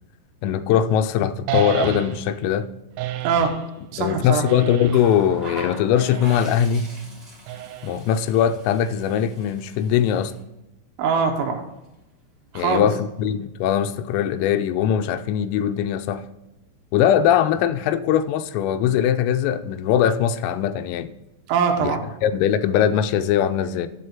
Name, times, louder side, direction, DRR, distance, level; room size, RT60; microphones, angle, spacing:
voice 1, 0.4-2.7 4.0-6.9 7.8-10.3 12.6-16.3 16.9-21.1 21.8-23.9, left 9 dB, 85° left, 3.2 m, -21 dB
sound 1, 1.5-2.4 3.0-3.7 4.5-5.2 6.0-6.6 7.5-8.2, right 12 dB, 90° right, 3.3 m, -30 dB
voice 2, 3.2-3.6 3.9-4.4 11.0-11.6 12.5-12.9 21.5-22.0, right 6 dB, 75° right, 2.7 m, -22 dB
Water tap faucet, 4.9-10.4 11.6-11.8, equal, ahead, 2.1 m, -41 dB
12.0 x 4.6 x 5.8 m
omnidirectional pair, 5.8 m